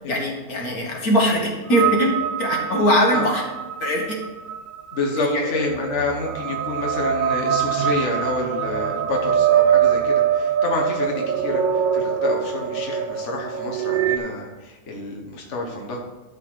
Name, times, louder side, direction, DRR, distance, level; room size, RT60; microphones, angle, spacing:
voice 1, 0.1-3.4 3.8-4.2 5.1-5.4, equal, 75° left, 0 dB, 2.3 m, -21 dB
sound 1, 1.7-14.2, right 8 dB, 75° right, 0.4 m, -23 dB
voice 2, 4.9-16.0, left 3 dB, 55° left, 0 dB, 1.5 m, -28 dB
12.0 x 4.2 x 6.1 m, 1.2 s
omnidirectional pair, 1.6 m